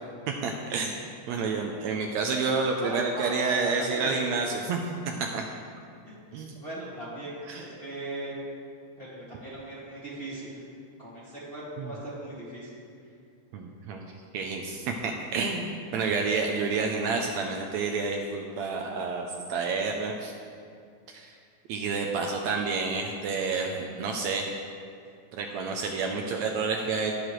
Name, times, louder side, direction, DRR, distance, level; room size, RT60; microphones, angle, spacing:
voice 1, 0.3-4.8 5.2-5.4 6.3-6.5 7.5-7.6 11.8-11.9 13.5-14.1 14.3-20.3 21.1-21.4 21.7-24.5 25.3-27.1, right 4 dB, 75° right, 2 dB, 1.8 m, -29 dB
voice 2, 2.8-4.1 6.0-8.4 9.0-10.6 11.0-12.7, right 1 dB, 20° left, -8 dB, 2.0 m, -39 dB
19.0 x 6.7 x 3.2 m, 2.3 s
omnidirectional pair, 3.5 m